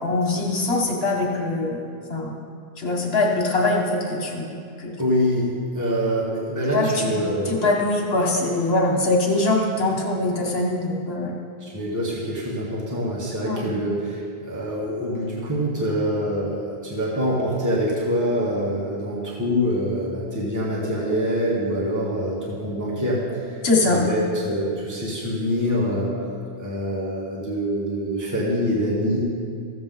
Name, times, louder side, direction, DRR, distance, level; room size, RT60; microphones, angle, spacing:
voice 1, 0.0-2.4 2.8-4.9 6.7-7.1 7.5-11.4 13.5-13.6 23.6-24.0, left 2 dB, 75° left, 0 dB, 1.6 m, -23 dB
voice 2, 5.0-7.6 11.6-26.1 26.6-29.2, equal, 15° right, -6 dB, 1.6 m, -25 dB
14.5 x 7.3 x 3.8 m, 2.4 s
omnidirectional pair, 1.0 m